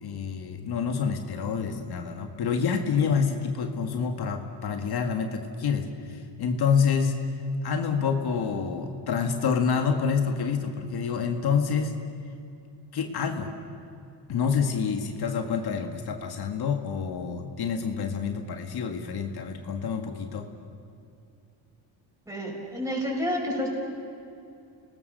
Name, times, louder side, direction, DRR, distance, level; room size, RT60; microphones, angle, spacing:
voice 1, 0.0-7.2 7.6-12.0 12.9-13.5 14.3-20.5, left 6 dB, 60° left, 4 dB, 2.0 m, -27 dB
voice 2, 22.3-23.7, equal, 5° right, -3 dB, 6.1 m, -29 dB
29.0 x 19.0 x 6.8 m, 2.6 s
cardioid pair, 95°, 44 cm